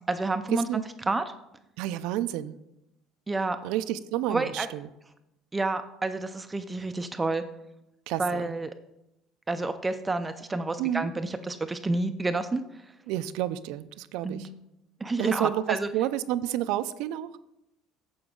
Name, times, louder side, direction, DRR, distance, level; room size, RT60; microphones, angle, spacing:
voice 1, 0.1-1.2 3.3-3.6 4.3-4.7 5.5-7.4 8.2-8.7 9.5-12.8 14.2-14.4 15.0-15.9, right 2 dB, 15° right, 9 dB, 0.4 m, -29 dB
voice 2, 1.8-2.6 3.6-4.9 8.1-8.5 10.8-11.1 13.1-14.5 15.2-17.3, right 13 dB, 75° right, 13 dB, 0.4 m, -30 dB
9.0 x 6.8 x 3.7 m, 0.87 s
cardioid pair, 135°, 0 cm